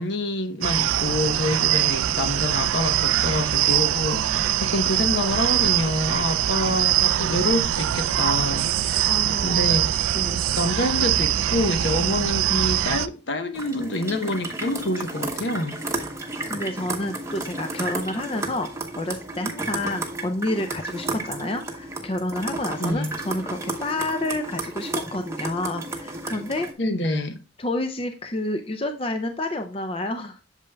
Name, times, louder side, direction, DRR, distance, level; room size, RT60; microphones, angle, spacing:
voice 1, 0.0-9.1 9.4-10.0 10.6-15.8 22.8-23.1 26.8-27.4, left 1 dB, 60° left, 0.9 m, -27 dB
sound 1, 0.6-13.1, right 12 dB, 90° right, 0.4 m, -23 dB
voice 2, 4.1-4.7 9.1-9.8 10.1-10.4 16.5-26.7 27.6-30.4, left 1 dB, 25° left, 0.5 m, -29 dB
sound 2, 13.6-26.7, right 2 dB, 15° right, 0.8 m, -32 dB
8.2 x 6.8 x 2.2 m
head